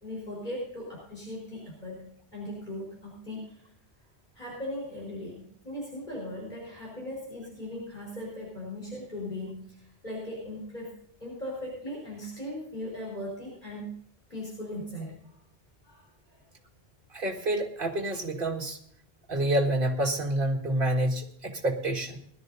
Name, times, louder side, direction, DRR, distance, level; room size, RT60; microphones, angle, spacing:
voice 1, 0.0-3.6 4.3-10.9 11.2-13.9 14.3-15.3 15.8-16.4, left 1 dB, 45° left, -5 dB, 4.5 m, -38 dB
voice 2, 17.1-18.8 19.3-22.2, right 1 dB, 55° right, 3 dB, 2.1 m, -28 dB
21.0 x 12.5 x 2.7 m, 0.69 s
omnidirectional pair, 1.1 m